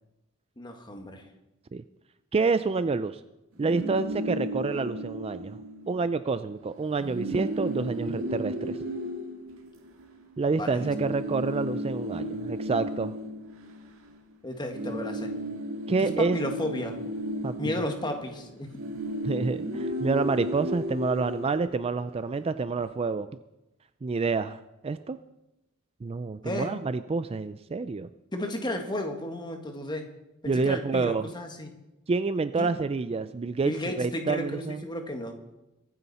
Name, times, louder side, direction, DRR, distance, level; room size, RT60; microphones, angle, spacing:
voice 1, 0.6-1.2 10.5-10.9 14.4-15.3 16.0-17.0 17.6-18.7 26.4-26.7 28.3-30.1 30.4-31.7 32.6-32.7 33.6-35.3, left 1 dB, 20° left, 4 dB, 1.7 m, -33 dB
voice 2, 2.3-3.2 3.6-5.6 5.9-8.8 10.4-13.1 15.9-16.4 17.4-17.8 19.2-23.3 24.0-25.2 26.0-28.1 30.5-31.3 32.1-34.8, right 4 dB, 25° right, 12 dB, 0.4 m, -28 dB
sound 1, 3.5-6.1 6.4-6.6 6.8-10.2 10.8-14.3 14.6-22.2, equal, 65° right, 1.9 m, -34 dB
23.0 x 9.7 x 4.2 m, 0.96 s
head